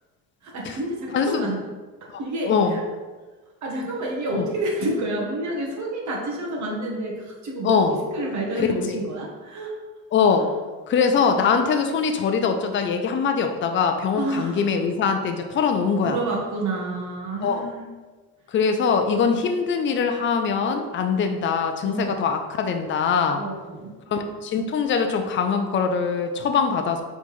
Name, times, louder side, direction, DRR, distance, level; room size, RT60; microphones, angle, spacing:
voice 1, 0.4-1.6 2.2-2.8 3.6-7.8 8.1-9.7 14.2-14.6 15.9-17.9 21.8-22.2 23.3-23.9, right 1 dB, 50° right, -2 dB, 1.1 m, -29 dB
voice 2, 1.1-1.5 2.1-2.2 2.5-2.8 4.3-4.4 7.6-8.0 8.6-9.0 10.1-10.5 10.9-16.2 17.4-17.6 18.5-23.4 24.1-27.0, left 5 dB, 35° left, 6 dB, 0.5 m, -22 dB
4.2 x 3.5 x 3.1 m, 1.3 s
cardioid pair, 105°, 36 cm